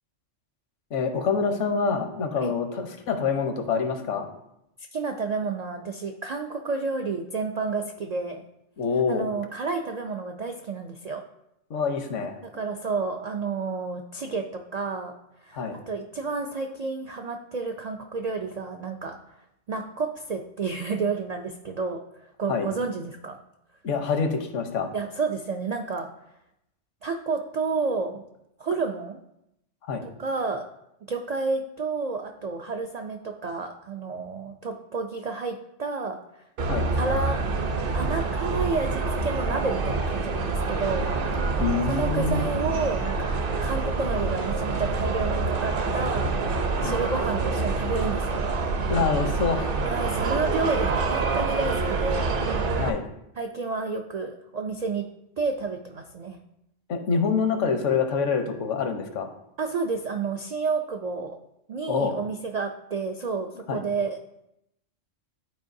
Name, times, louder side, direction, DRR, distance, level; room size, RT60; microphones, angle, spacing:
voice 1, 0.9-4.3 8.8-9.3 11.7-12.4 15.5-15.8 22.5-22.7 23.8-24.9 29.9-30.0 36.7-36.9 41.6-42.5 46.7-47.0 48.9-49.8 52.8-53.0 56.9-59.3 61.9-62.1 63.7-63.8, left 5 dB, 80° left, 6 dB, 1.2 m, -26 dB
voice 2, 4.9-8.4 9.1-11.2 12.5-15.1 15.4-19.2 19.7-22.0 22.4-23.4 24.9-26.1 27.0-28.2 28.6-29.2 30.0-30.6 31.1-36.4 36.9-37.4 37.9-41.0 41.9-43.4 43.6-46.3 46.8-48.4 49.8-52.3 53.4-55.1 55.4-56.4 59.6-61.4 61.7-64.2, right 4 dB, 70° right, 4 dB, 0.3 m, -30 dB
sound 1, 36.6-52.9, right 3 dB, 55° right, 0.8 m, -26 dB
11.5 x 4.5 x 2.6 m, 0.82 s
omnidirectional pair, 1.3 m